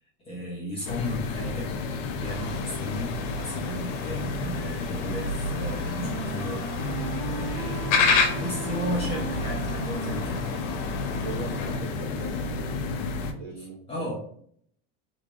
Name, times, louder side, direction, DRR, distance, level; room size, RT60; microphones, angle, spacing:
voice 1, 0.2-1.7 2.2-6.7 7.3-10.4 13.5-14.2, left 1 dB, 15° left, -6 dB, 0.8 m, -35 dB
sound 1, 0.8-13.3, left 3 dB, 60° left, 0.6 m, -31 dB
sound 2, 2.2-11.8, left 5 dB, 85° left, 0.9 m, -31 dB
Wind instrument woodwind instrument, 5.2-11.2, right 5 dB, 70° right, 0.5 m, -39 dB
voice 2, 11.1-12.8 13.3-14.1, right 2 dB, 35° right, -4 dB, 1.4 m, -40 dB
3.1 x 2.7 x 3.4 m, 0.64 s
supercardioid pair, 165°, 35 cm